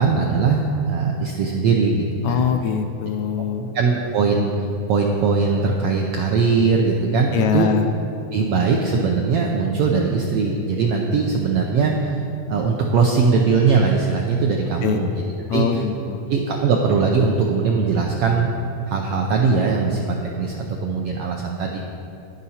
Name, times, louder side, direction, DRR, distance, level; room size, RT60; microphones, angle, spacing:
voice 1, 0.0-2.5 3.7-4.5 4.9-7.7 8.3-12.1 12.5-15.1 15.5-15.7 16.3-18.5 18.9-21.8, right 4 dB, 85° right, 0 dB, 1.3 m, -20 dB
voice 2, 2.2-3.7 7.3-7.9 14.8-15.0 15.5-16.3, left 7 dB, 80° left, 5 dB, 1.7 m, -22 dB
10.5 x 10.5 x 4.2 m, 2.7 s
omnidirectional pair, 3.5 m